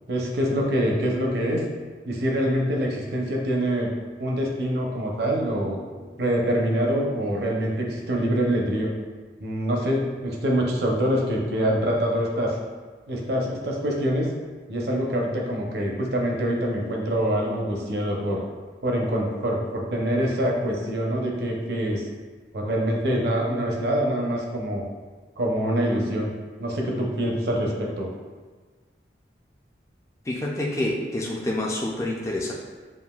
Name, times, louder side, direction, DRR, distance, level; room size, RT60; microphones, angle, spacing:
voice 1, 0.1-1.6 2.0-3.9 4.2-8.9 9.4-12.6 13.1-14.3 14.7-18.4 18.8-22.1 22.5-24.8 25.4-26.3 26.6-28.1, equal, 65° right, -1 dB, 0.7 m, -25 dB
voice 2, 30.3-32.5, left 1 dB, 15° left, -3 dB, 0.4 m, -27 dB
7.1 x 2.6 x 2.3 m, 1.4 s
head